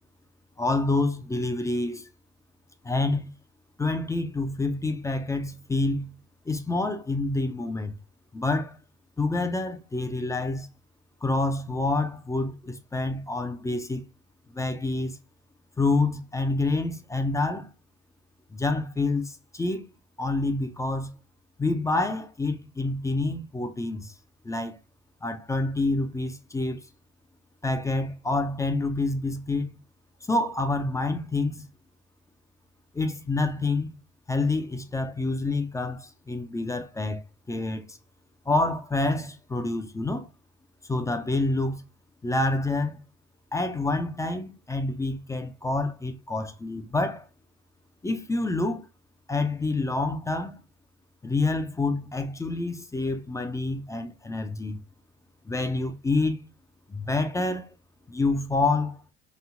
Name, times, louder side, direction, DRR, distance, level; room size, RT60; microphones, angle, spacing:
voice 1, 0.6-2.1 2.8-3.3 3.8-6.2 6.5-7.9 8.3-8.8 9.2-10.7 11.2-14.0 14.5-15.2 15.8-17.7 18.5-19.9 20.2-21.1 21.6-24.1 24.4-24.8 25.2-26.8 27.6-29.7 30.2-31.6 32.9-34.0 34.3-38.0 38.5-40.3 40.9-41.8 42.2-43.0 43.5-47.3 48.0-48.9 49.3-50.6 51.2-54.8 55.5-56.5 56.9-57.7 58.1-59.0, left 2 dB, 10° left, 0.4 m, -27 dB
3.1 x 2.7 x 2.4 m
hypercardioid pair, 70°, 37 cm